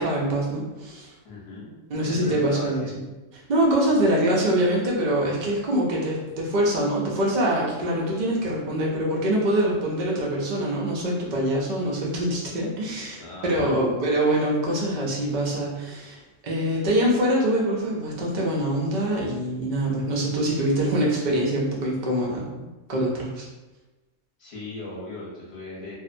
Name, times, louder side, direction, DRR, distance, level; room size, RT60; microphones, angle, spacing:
voice 1, 0.0-1.1 1.9-2.9 3.5-22.6 22.9-23.5, right 1 dB, 75° right, -4 dB, 0.4 m, -24 dB
voice 2, 1.2-3.0 13.2-13.8 24.4-25.9, left 2 dB, 55° left, -6 dB, 0.9 m, -38 dB
2.6 x 2.0 x 2.5 m, 1.1 s
omnidirectional pair, 1.4 m